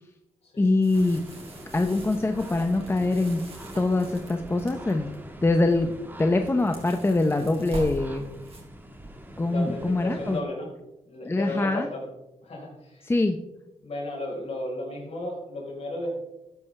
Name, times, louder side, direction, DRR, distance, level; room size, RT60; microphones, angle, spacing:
voice 1, 0.6-1.2 1.7-3.4 3.8-5.1 5.4-5.9 6.2-8.3 9.4-10.4 11.2-11.9 13.0-13.4, left 2 dB, 20° left, 6 dB, 0.7 m, -24 dB
sound 1, 0.8-5.2 5.6-5.9 6.2-8.6, right 1 dB, 50° right, 3.7 m, -42 dB
sound 2, 0.9-10.4, right 1 dB, 15° right, 1.4 m, -44 dB
voice 2, 9.5-10.7 11.0-12.1 12.4-13.1 13.8-16.1, left 1 dB, 55° left, -1 dB, 4.2 m, -34 dB
13.5 x 9.4 x 3.3 m, 0.96 s
cardioid pair, 105°, 13 cm